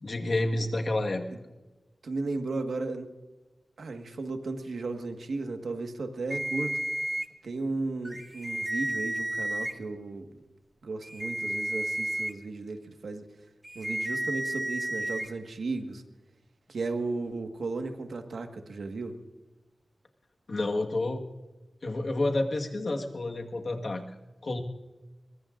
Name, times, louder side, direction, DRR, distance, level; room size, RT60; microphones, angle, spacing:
voice 1, 0.0-1.2 20.5-21.2 21.8-24.0 24.4-24.6, left 2 dB, 55° left, 3 dB, 1.6 m, -29 dB
voice 2, 2.0-3.1 3.8-6.8 7.4-10.2 10.8-13.2 13.7-16.0 16.7-19.2, right 3 dB, 90° right, 5 dB, 1.6 m, -35 dB
sound 1, 6.3-7.3 8.0-9.7 11.0-12.3 13.6-15.3, right 1 dB, 15° right, 1.3 m, -32 dB
23.0 x 21.0 x 2.6 m, 1.2 s
wide cardioid pair, 95°, 0 cm